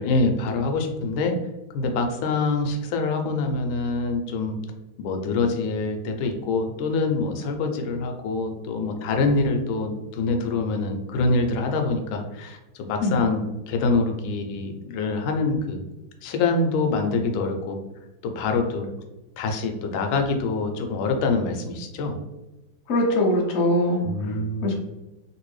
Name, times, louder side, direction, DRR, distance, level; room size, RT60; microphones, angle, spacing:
voice 1, 0.0-1.3 1.7-4.6 5.0-15.8 16.2-17.8 18.2-18.9 19.4-22.2 24.0-24.8, left 3 dB, 90° left, 4 dB, 1.4 m, -25 dB
voice 2, 22.9-24.0 24.3-24.4 24.6-24.8, left 1 dB, 60° left, -1 dB, 1.0 m, -21 dB
3.3 x 2.6 x 3.1 m, 1.0 s
omnidirectional pair, 2.1 m